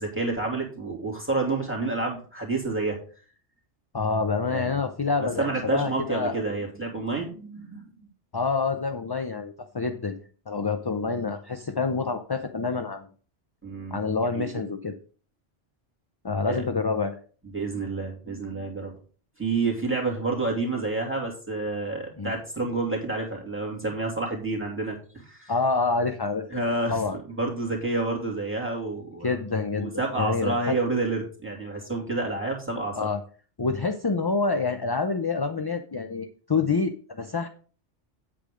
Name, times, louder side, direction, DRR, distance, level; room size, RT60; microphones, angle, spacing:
voice 1, 0.0-3.0 4.5-4.8 5.2-7.8 13.6-14.0 14.3-14.6 16.4-16.6 17.4-18.9 19.4-25.5 26.5-29.4 29.8-33.1, right 3 dB, 10° right, 0 dB, 2.7 m, -29 dB
voice 2, 3.9-6.4 8.3-10.2 10.5-13.1 13.9-15.0 16.2-17.2 22.2-22.3 25.5-26.6 26.9-27.2 29.2-30.8 33.0-33.2 33.6-37.5, left 4 dB, 25° left, 7 dB, 0.6 m, -27 dB
8.5 x 8.3 x 3.8 m, 0.41 s
omnidirectional pair, 1.2 m